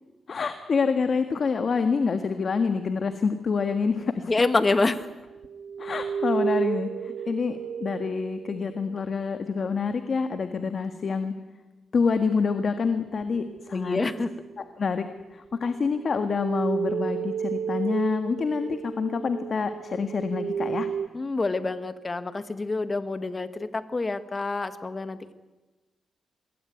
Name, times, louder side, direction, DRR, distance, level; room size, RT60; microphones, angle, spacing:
voice 1, 0.3-4.3 5.8-11.4 11.9-14.0 14.6-20.9, left 5 dB, 45° left, 8 dB, 1.6 m, -27 dB
voice 2, 4.3-5.0 13.7-14.3 21.1-25.3, left 3 dB, 25° left, 11 dB, 1.6 m, -27 dB
sound 1, 5.0-9.1 13.2-14.7 15.6-21.1, right 7 dB, 60° right, 1.0 m, -32 dB
26.0 x 21.5 x 9.4 m, 1.2 s
cardioid pair, 125°, 0 cm